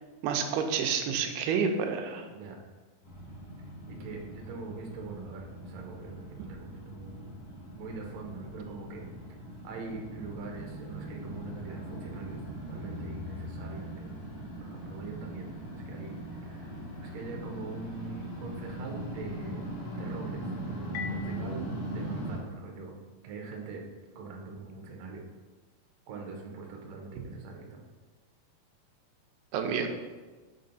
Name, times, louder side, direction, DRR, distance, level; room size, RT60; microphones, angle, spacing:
voice 1, 0.2-2.3 29.5-29.9, right 6 dB, 90° right, 5 dB, 2.6 m, -29 dB
sound 1, 3.0-22.4, equal, 55° left, 3.2 m, -40 dB
voice 2, 3.9-7.3 7.7-9.4 9.6-15.5 15.8-19.7 19.9-22.9 23.2-23.8 24.1-25.2 26.1-27.8, right 3 dB, 75° right, 1 dB, 1.6 m, -43 dB
Marimba xylophone, 20.9-23.6, equal, 85° left, 1.8 m, -41 dB
7.4 x 4.5 x 4.0 m, 1.3 s
omnidirectional pair, 4.5 m